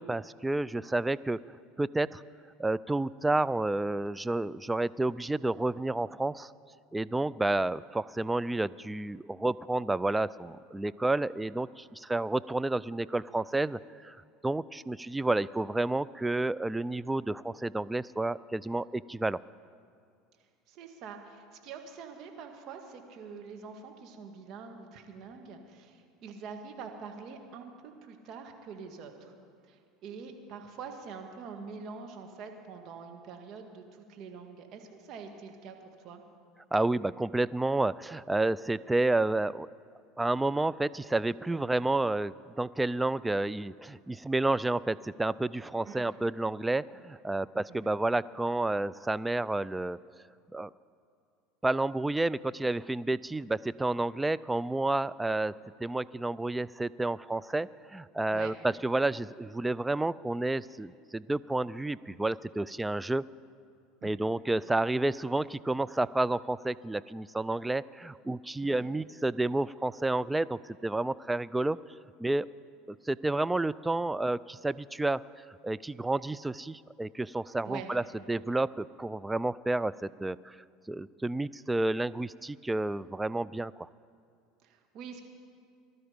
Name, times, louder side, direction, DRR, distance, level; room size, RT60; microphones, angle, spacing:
voice 1, 0.0-1.4 1.8-2.2 2.6-6.5 6.9-14.2 14.4-19.4 36.7-39.7 40.2-50.0 50.5-50.7 51.6-63.2 64.0-71.8 72.2-72.5 72.9-75.2 75.6-80.6 80.9-83.9, right 2 dB, 10° right, 18 dB, 0.3 m, -30 dB
voice 2, 20.7-29.3 29.6-35.8 36.0-36.2 45.9-46.2 47.7-47.9 58.3-58.5 64.0-64.3 68.6-68.9 77.6-77.9 84.6-85.3, right 5 dB, 55° right, 4 dB, 1.9 m, -45 dB
19.0 x 12.5 x 5.2 m, 2.3 s
hypercardioid pair, 90°, 0 cm